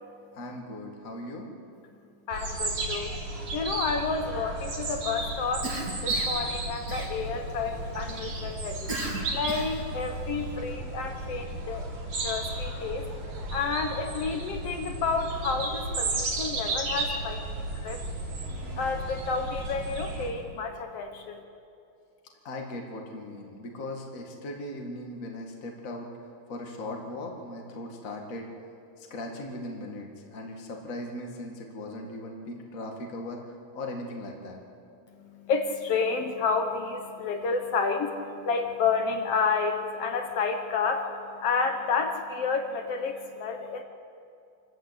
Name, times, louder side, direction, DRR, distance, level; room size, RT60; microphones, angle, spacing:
voice 1, 0.3-1.5 22.4-26.1 26.5-28.5 29.0-34.6, left 1 dB, 30° left, 1 dB, 2.0 m, -38 dB
voice 2, 2.3-3.2 3.5-5.7 6.0-9.0 9.3-11.8 12.2-13.1 13.5-18.0 18.8-21.4 35.1-43.8, left 5 dB, 60° left, 5 dB, 2.0 m, -30 dB
sound 1, 2.3-20.3, right 2 dB, 60° right, 4.5 m, -33 dB
Cough, 5.6-6.4 6.9-7.5 8.9-9.9, right 2 dB, 30° right, 2.8 m, -36 dB
27.5 x 13.0 x 8.2 m, 2.6 s
omnidirectional pair, 3.6 m